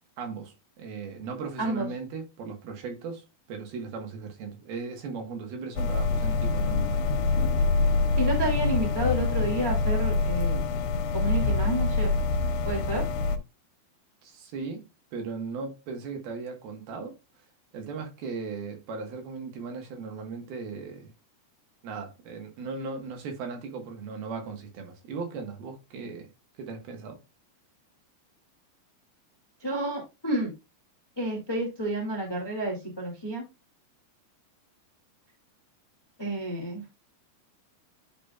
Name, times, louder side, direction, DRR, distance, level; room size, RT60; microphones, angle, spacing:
voice 1, 0.2-7.1 14.2-14.8 15.1-17.2 17.7-21.1 21.8-26.3 26.5-27.2, right 4 dB, 65° right, 3.0 m, -37 dB
sound 1, 5.8-13.4, left 3 dB, 85° left, 3.1 m, -25 dB
voice 2, 8.2-10.7 11.1-12.1 12.6-13.0 29.6-30.5 31.1-33.5 36.2-36.8, right 1 dB, 20° left, 0.6 m, -30 dB
11.0 x 5.2 x 2.3 m
omnidirectional pair, 5.0 m